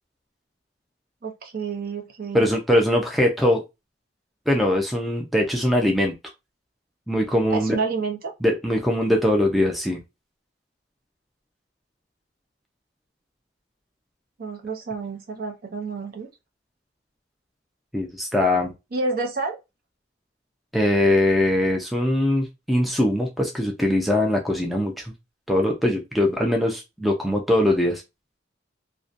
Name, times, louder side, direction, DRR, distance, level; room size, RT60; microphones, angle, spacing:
voice 1, 1.2-2.5 7.5-8.3 14.4-16.3 18.9-19.6, right 4 dB, 50° right, 0.6 m, -29 dB
voice 2, 2.3-3.6 4.5-6.1 7.1-7.8 8.4-10.0 17.9-18.7 20.7-25.1 25.5-28.0, left 1 dB, ahead, 0.3 m, -21 dB
2.6 x 2.1 x 2.4 m
head